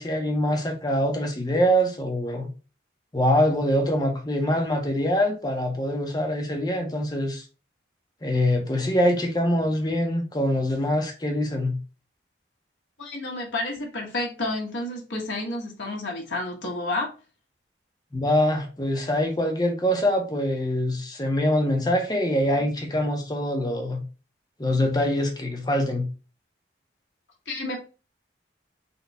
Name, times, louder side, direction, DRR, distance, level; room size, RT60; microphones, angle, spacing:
voice 1, 0.0-2.5 3.1-7.4 8.2-11.8 18.1-24.0 24.6-26.1, equal, 20° left, 0.7 m, -24 dB
voice 2, 13.0-17.1 27.5-27.8, left 2 dB, 80° left, 1.4 m, -30 dB
4.1 x 2.3 x 4.0 m
head